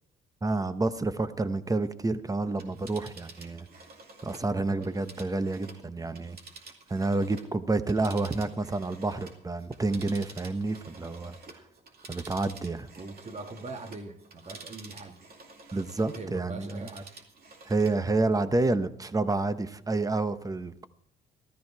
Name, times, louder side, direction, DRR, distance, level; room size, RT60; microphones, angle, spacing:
voice 1, 0.4-3.7 4.2-6.4 6.9-11.3 12.1-12.9 15.7-16.9 17.7-20.9, right 3 dB, 15° right, 12 dB, 0.9 m, -29 dB
Telephone, 2.5-7.5 7.8-16.3 16.6-18.0 18.4-18.5, right 3 dB, 50° right, 2.5 m, -49 dB
voice 2, 4.5-5.0 12.9-15.2 15.7-15.8 16.2-17.1, right 3 dB, 35° right, 6 dB, 1.7 m, -42 dB
13.5 x 13.5 x 4.7 m, 0.66 s
cardioid pair, 90°, 20 cm